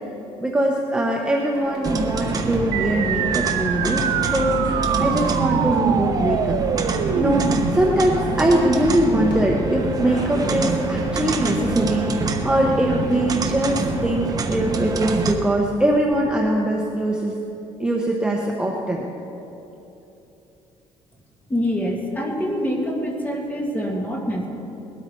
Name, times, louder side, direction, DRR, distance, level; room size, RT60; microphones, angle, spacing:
voice 1, 0.4-6.6 7.2-17.3 17.8-19.1, right 1 dB, 5° right, -1 dB, 1.0 m, -22 dB
sound 1, 1.5-15.7 15.9-16.2, left 1 dB, 40° left, 3.3 m, -39 dB
sound 2, 1.8-15.3, right 3 dB, 30° right, 0.9 m, -25 dB
sound 3, 2.7-7.7, right 8 dB, 75° right, 0.8 m, -25 dB
voice 2, 21.5-24.5, equal, 15° left, -1 dB, 2.1 m, -25 dB
19.5 x 13.0 x 4.6 m, 3.0 s
cardioid pair, 160°, 12 cm